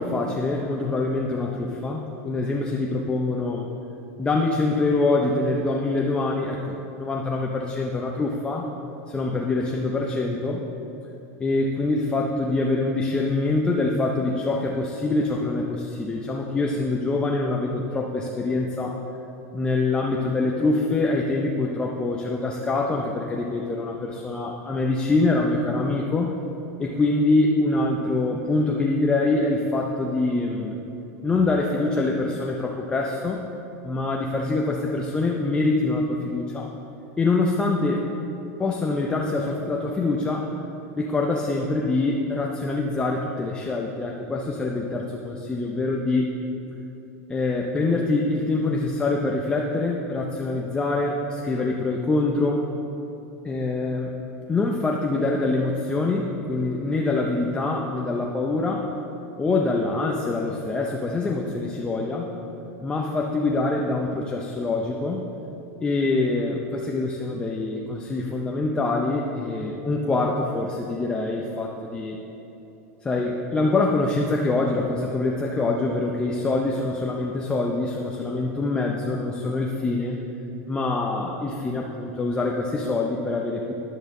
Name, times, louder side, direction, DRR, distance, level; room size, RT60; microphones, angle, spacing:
voice 1, 0.0-3.7 4.2-8.7 9.1-10.6 11.4-19.0 19.5-26.4 26.8-30.8 31.2-33.4 33.8-36.7 37.2-38.0 38.6-40.6 41.0-46.3 47.3-52.6 53.4-54.1 54.5-58.9 59.4-62.3 62.8-65.2 65.8-72.2 73.0-80.2 80.7-83.7, left 3 dB, 10° left, -1 dB, 0.5 m, -25 dB
12.0 x 10.0 x 3.7 m, 3.0 s
supercardioid pair, 165°, 9 cm